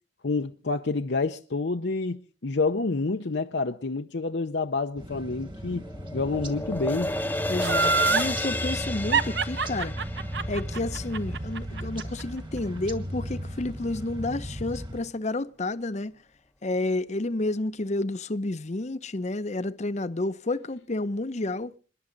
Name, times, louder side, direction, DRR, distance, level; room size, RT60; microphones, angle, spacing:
voice 1, 0.2-5.9 6.1-7.1, left 3 dB, 70° left, 0.8 m, -28 dB
sound 1, 5.0-15.0, equal, 25° right, 1.8 m, -36 dB
sound 2, 5.3-11.6, left 1 dB, 10° left, 0.9 m, -32 dB
voice 2, 7.5-9.9 10.5-16.1 16.6-21.7, left 2 dB, 40° left, 0.7 m, -30 dB
Laughter, 7.6-8.3 9.1-12.2 12.6-12.7, right 5 dB, 70° right, 1.0 m, -25 dB
27.5 x 11.0 x 3.9 m
head